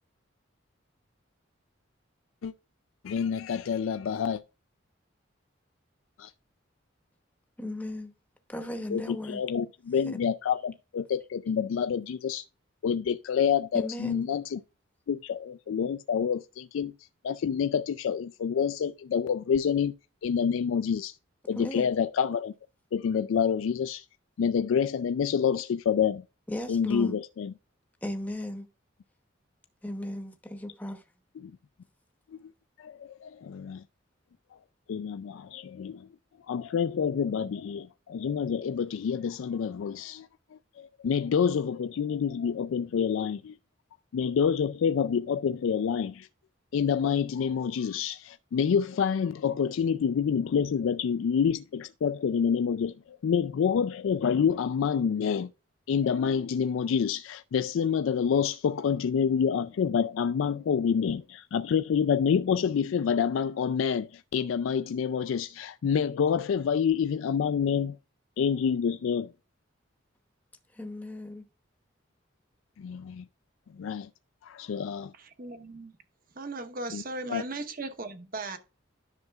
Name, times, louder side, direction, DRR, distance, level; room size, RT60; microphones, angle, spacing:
voice 1, 3.0-4.4 6.2-6.3 8.9-12.4 12.8-14.6 15.1-20.0 20.2-21.2 21.5-22.5 22.9-24.1 24.4-26.2 26.7-27.5 31.4-31.5 32.8-33.8 34.9-36.1 36.5-40.3 40.8-43.6 44.1-46.3 46.7-55.5 55.9-68.0 68.4-69.3 72.8-73.3 73.8-74.1 74.4-75.1 76.9-77.0 77.3-77.4, left 7 dB, 80° left, 0.3 m, -27 dB
voice 2, 7.6-8.1 8.5-9.4 10.0-10.2 13.7-14.3 21.5-21.9 26.5-27.2 28.0-28.7 29.8-31.0 70.8-71.4, left 1 dB, 10° left, 0.8 m, -36 dB
voice 3, 75.1-75.9 76.3-78.6, right 3 dB, 45° right, 1.0 m, -37 dB
10.5 x 6.5 x 2.3 m
head